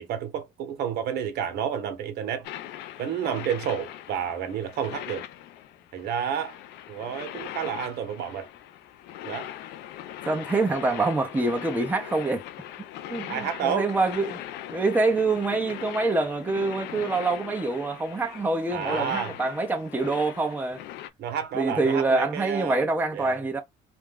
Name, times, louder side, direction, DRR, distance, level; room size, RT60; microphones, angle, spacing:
voice 1, 0.0-2.5 3.0-5.3 5.9-6.6 6.9-8.5 9.2-9.5 13.3-13.9 18.7-19.4 21.2-22.8 23.1-23.4, right 8 dB, 75° right, 1.0 m, -30 dB
sound 1, 2.4-21.1, left 12 dB, 80° left, 0.4 m, -40 dB
voice 2, 10.3-12.4 13.1-14.4 14.7-20.8 21.5-23.6, right 3 dB, 10° right, 0.7 m, -25 dB
2.5 x 2.3 x 3.5 m
cardioid pair, 110°, 17 cm